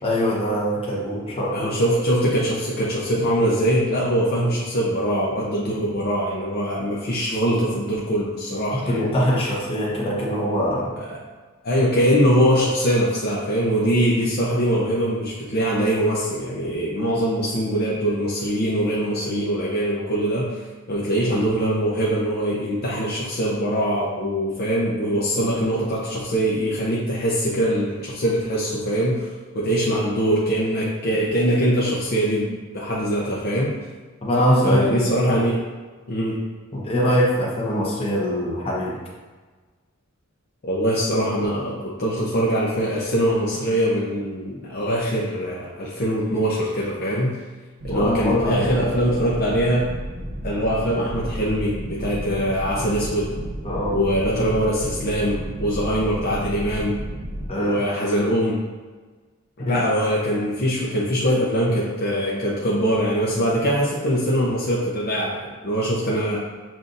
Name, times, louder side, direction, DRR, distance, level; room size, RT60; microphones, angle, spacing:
voice 1, 0.0-1.8 8.7-10.9 34.2-35.1 36.7-39.0 47.9-48.8 53.6-54.0 57.5-57.8 59.6-59.8, equal, 25° left, -5 dB, 1.0 m, -23 dB
voice 2, 1.5-9.1 11.1-11.2 11.6-20.6 20.9-29.3 29.5-33.7 34.6-35.6 36.1-36.4 40.6-47.4 47.8-49.9 50.4-53.3 53.9-57.0 57.6-58.6 59.6-66.4, equal, 50° left, -5 dB, 0.7 m, -22 dB
sound 1, 47.8-57.5, right 1 dB, 65° right, 0.7 m, -33 dB
7.4 x 2.6 x 2.6 m, 1.4 s
head